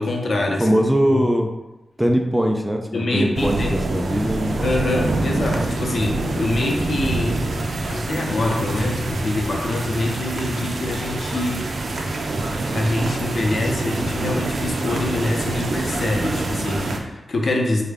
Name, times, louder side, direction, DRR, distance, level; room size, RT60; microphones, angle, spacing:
voice 1, 0.0-0.8 1.1-1.3 2.9-3.8 4.6-7.5 7.8-11.7 12.7-17.8, left 2 dB, 60° left, 1 dB, 0.6 m, -25 dB
voice 2, 0.6-1.5 2.0-4.6, equal, 10° right, 3 dB, 0.4 m, -21 dB
sound 1, 3.4-17.0, right 2 dB, 70° right, 0.5 m, -26 dB
Liquid, 5.2-11.4 11.7-11.8, left 2 dB, 85° left, 0.9 m, -40 dB
4.7 x 2.2 x 3.4 m, 1.0 s
wide cardioid pair, 95°, 0 cm